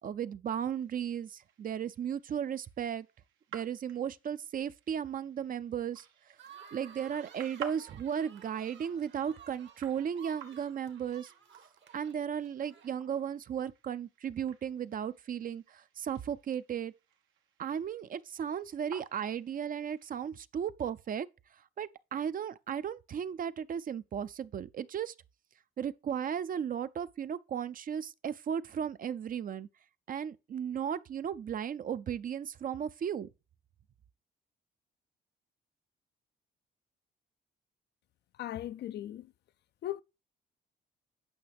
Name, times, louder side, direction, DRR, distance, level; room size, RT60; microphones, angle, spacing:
voice 1, 0.0-3.1 3.5-6.4 6.7-11.3 11.9-16.9 17.6-25.1 25.8-29.7 30.1-33.3, right 8 dB, 45° right, 0.5 m, -35 dB
sound 1, 0.6-20.1, right 7 dB, 85° right, 1.1 m, -54 dB
sound 2, 6.4-13.3, right 8 dB, 65° right, 1.3 m, -55 dB
voice 2, 38.4-39.3 39.8-40.0, left 13 dB, 60° left, 0.4 m, -38 dB
9.2 x 5.5 x 3.5 m
cardioid pair, 90°, 20 cm